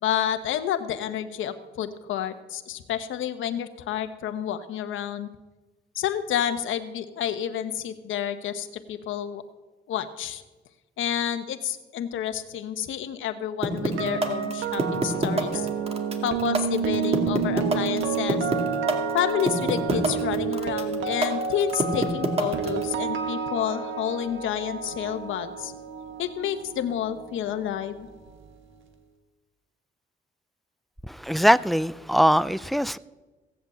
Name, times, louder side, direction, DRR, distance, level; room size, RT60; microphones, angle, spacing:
voice 1, 0.0-5.3 5.9-9.4 9.9-10.4 11.0-15.7 16.2-18.5 19.1-25.7 26.2-28.1, left 10 dB, 80° left, 1.1 m, -29 dB
sound 1, 13.6-22.8, right 2 dB, 30° right, 2.3 m, -25 dB
sound 2, 13.8-27.8 28.1-28.4, right 6 dB, 75° right, 1.6 m, -30 dB
voice 2, 31.0-33.0, equal, ahead, 0.4 m, -21 dB
16.5 x 8.1 x 7.8 m
cardioid pair, 90°, 20 cm